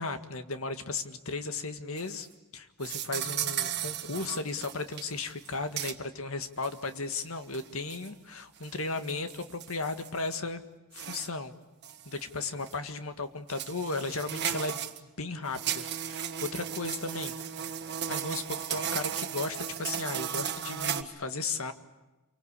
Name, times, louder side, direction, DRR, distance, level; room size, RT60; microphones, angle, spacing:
voice 1, 0.0-2.3 2.5-10.6 10.9-11.5 12.1-17.3 18.1-21.7, left 3 dB, 75° left, 8 dB, 1.8 m, -35 dB
sound 1, 2.0-2.3 2.8-5.0 5.3-5.5 5.8-5.9 6.6-6.7 7.5-8.1 8.6-10.4 10.9-11.3 11.8-12.2 12.7-12.8 13.5-15.0 15.5-21.0, right 9 dB, 50° right, 1.5 m, -35 dB
28.0 x 24.0 x 8.5 m, 1.1 s
head